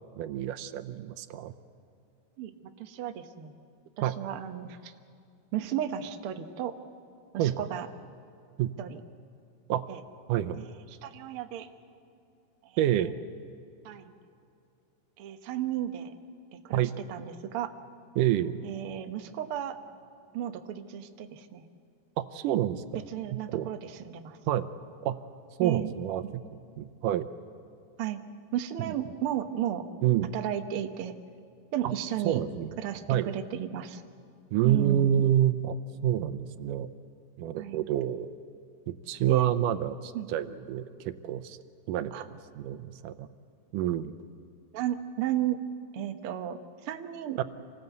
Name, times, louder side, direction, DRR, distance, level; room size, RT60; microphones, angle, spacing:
voice 1, 0.2-1.5 4.0-4.2 7.4-7.6 8.6-8.7 9.7-9.8 10.3-10.7 12.8-13.1 16.7-16.9 18.2-18.6 22.2-22.8 23.5-23.7 24.5-24.7 25.0-25.2 25.6-26.2 26.8-27.3 30.0-30.3 31.8-31.9 32.2-32.7 33.1-33.3 34.5-35.8 36.0-36.9 37.4-38.3 38.9-41.6 41.9-42.1 42.6-43.3 43.7-44.1 47.4-47.5, right 11 dB, 85° right, 11 dB, 2.3 m, -27 dB
voice 2, 2.8-3.6 4.0-4.9 5.5-6.7 7.3-7.9 8.8-9.0 9.9-10.0 11.0-11.7 13.8-14.1 15.2-16.1 16.6-17.7 18.6-19.8 20.3-21.7 23.1-24.4 25.6-25.9 26.2-26.3 28.0-28.2 28.5-29.8 30.3-31.1 31.7-32.4 32.8-34.0 34.6-35.2 37.6-37.8 39.3-39.5 40.1-40.3 42.1-42.2 44.7-45.6 45.9-47.4, right 11 dB, 60° right, 6 dB, 1.5 m, -34 dB
27.0 x 19.0 x 8.2 m, 2.5 s
omnidirectional pair, 3.7 m